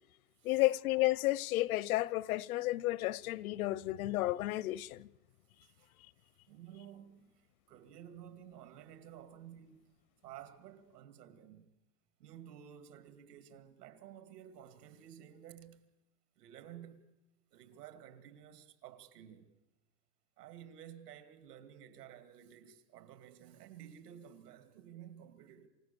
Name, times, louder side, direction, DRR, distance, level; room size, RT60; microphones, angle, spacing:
voice 1, 0.4-5.1, left 18 dB, 65° left, 0.7 m, -32 dB
voice 2, 6.5-10.0 10.2-11.7 12.2-15.9 16.4-17.1 17.5-19.5 20.4-25.7, right 10 dB, 80° right, 2.5 m, -53 dB
28.0 x 16.0 x 6.9 m
supercardioid pair, 175°, 47 cm